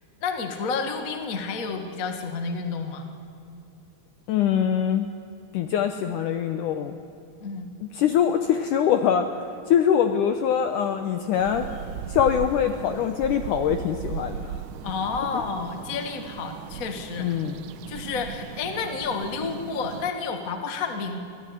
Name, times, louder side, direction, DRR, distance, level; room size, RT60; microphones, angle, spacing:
voice 1, 0.2-3.1 7.4-7.7 14.8-17.4 17.9-21.2, left 5 dB, 45° left, 5 dB, 1.0 m, -30 dB
voice 2, 4.3-5.1 5.5-7.0 7.8-9.3 9.7-11.7 12.1-14.6 17.2-17.6, left 9 dB, 80° left, 7 dB, 1.9 m, -23 dB
sound 1, 11.3-20.1, right 8 dB, 85° right, 3.0 m, -37 dB
24.0 x 15.5 x 9.9 m, 2.6 s
omnidirectional pair, 4.5 m